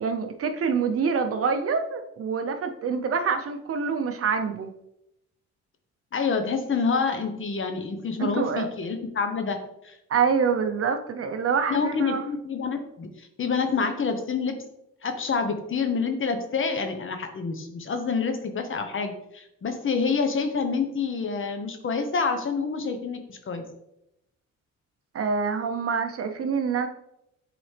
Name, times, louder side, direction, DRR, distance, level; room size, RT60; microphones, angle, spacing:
voice 1, 0.0-4.7 8.2-8.7 10.1-12.2 25.1-26.9, right 5 dB, 50° right, 7 dB, 0.7 m, -26 dB
voice 2, 6.1-9.6 9.8-10.0 11.7-14.6 15.0-23.6, left 5 dB, 40° left, 7 dB, 1.0 m, -27 dB
7.8 x 4.0 x 3.3 m, 0.83 s
cardioid pair, 90°, 30 cm